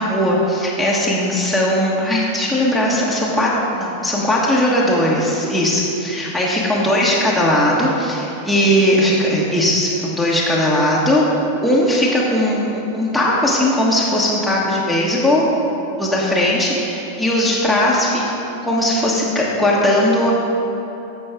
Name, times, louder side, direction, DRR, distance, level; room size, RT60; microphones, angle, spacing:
voice 1, 0.0-11.3 11.6-15.4 16.0-20.3, left 1 dB, ahead, -5 dB, 1.3 m, -18 dB
14.5 x 5.4 x 3.5 m, 2.9 s
figure-of-eight pair, 90°, 0 cm